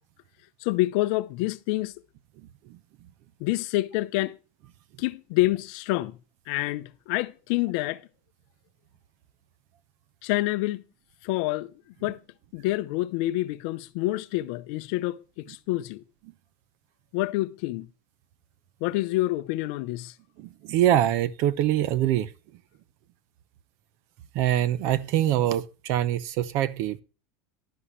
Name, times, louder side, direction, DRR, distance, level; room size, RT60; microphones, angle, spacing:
voice 1, 0.6-1.9 3.4-4.4 5.0-6.2 6.5-8.0 10.2-10.8 11.2-11.7 12.0-12.2 12.5-16.0 17.1-17.9 18.8-20.1, left 18 dB, 50° left, 0.6 m, -27 dB
voice 2, 20.4-22.3 24.3-27.0, right 12 dB, 40° right, 0.7 m, -24 dB
11.5 x 11.0 x 3.2 m
supercardioid pair, 170°, 7 cm